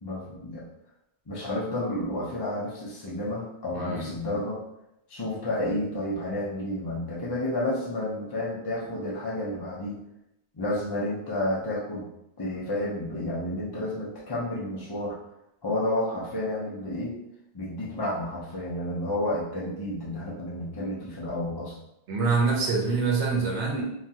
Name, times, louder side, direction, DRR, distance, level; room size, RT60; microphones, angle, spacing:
voice 1, 0.0-0.6 1.3-4.6 5.1-10.0 10.5-12.1 12.4-15.2 15.6-17.2 17.5-21.8, left 1 dB, 35° left, -6 dB, 0.4 m, -31 dB
voice 2, 3.7-4.1 22.1-23.8, right 4 dB, 80° right, -2 dB, 1.1 m, -25 dB
2.9 x 2.4 x 2.6 m, 0.84 s
omnidirectional pair, 1.2 m